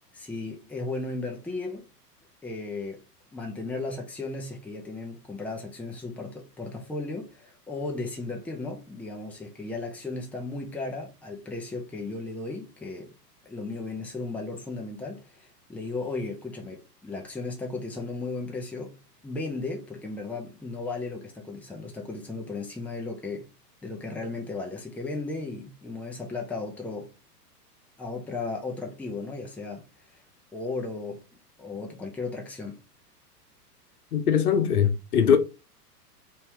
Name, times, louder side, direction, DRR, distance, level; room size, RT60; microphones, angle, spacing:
voice 1, 0.1-1.9 2.4-3.0 3.3-13.1 13.4-19.0 19.2-23.5 23.8-27.1 28.0-30.2 30.5-31.3 31.6-32.8, left 3 dB, 5° left, 0.7 m, -35 dB
voice 2, 34.1-35.4, left 7 dB, 65° left, 1.1 m, -21 dB
4.2 x 3.0 x 3.4 m
figure-of-eight pair, 105°, 48 cm